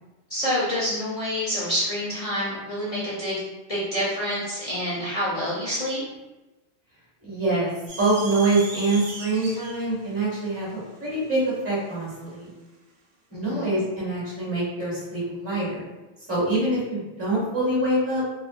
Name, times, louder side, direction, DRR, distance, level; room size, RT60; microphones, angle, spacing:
voice 1, 0.3-3.4 3.7-6.0 13.3-13.7, equal, 40° left, -10 dB, 0.7 m, -27 dB
voice 2, 7.2-7.7 8.0-12.5 13.3-15.9 16.3-18.2, right 2 dB, 15° right, -8 dB, 1.0 m, -25 dB
sound 1, 7.9-12.4, right 2 dB, 85° right, 0.9 m, -39 dB
2.9 x 2.0 x 2.5 m, 1.1 s
omnidirectional pair, 1.1 m